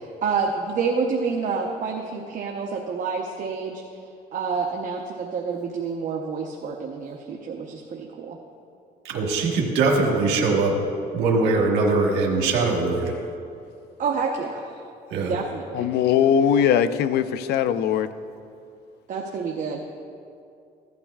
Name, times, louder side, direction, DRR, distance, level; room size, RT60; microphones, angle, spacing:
voice 1, 0.2-3.8 4.3-8.4 14.0-14.6 15.2-15.9 19.1-19.8, right 5 dB, 50° right, 1 dB, 0.9 m, -28 dB
voice 2, 9.0-10.7 11.1-13.1 15.1-15.3, right 3 dB, 90° right, 0 dB, 1.4 m, -21 dB
voice 3, 15.8-18.1, left 8 dB, 75° left, 12 dB, 0.5 m, -20 dB
15.5 x 12.0 x 2.4 m, 2.5 s
cardioid pair, 110°, 17 cm